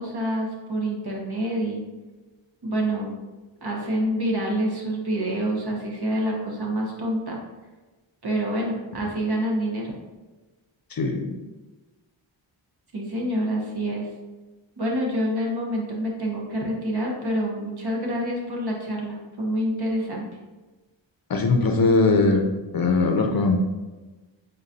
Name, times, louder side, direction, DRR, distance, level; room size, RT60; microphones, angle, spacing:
voice 1, 0.0-1.8 2.6-3.2 3.6-7.4 8.2-9.9 12.9-14.1 14.8-20.3, equal, 55° right, -1 dB, 1.1 m, -27 dB
voice 2, 10.9-11.4 21.3-22.5 22.7-23.6, left 3 dB, 50° left, 4 dB, 0.5 m, -20 dB
3.9 x 3.9 x 2.6 m, 1.2 s
wide cardioid pair, 65°, 48 cm